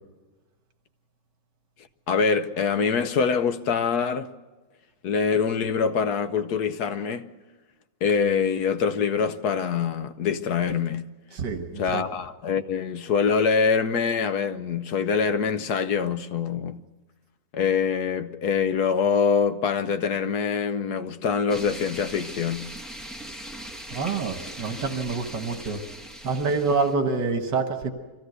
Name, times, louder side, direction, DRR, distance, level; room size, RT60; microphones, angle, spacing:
voice 1, 2.1-4.3 5.0-7.3 8.0-11.1 11.8-16.8 17.5-22.7, left 6 dB, 65° left, 1.3 m, -24 dB
voice 2, 11.3-12.0 23.9-25.8 26.2-27.9, right 4 dB, 70° right, 2.0 m, -27 dB
sound 1, 21.5-26.9, right 1 dB, ahead, 1.3 m, -40 dB
24.0 x 15.5 x 8.0 m
omnidirectional pair, 1.9 m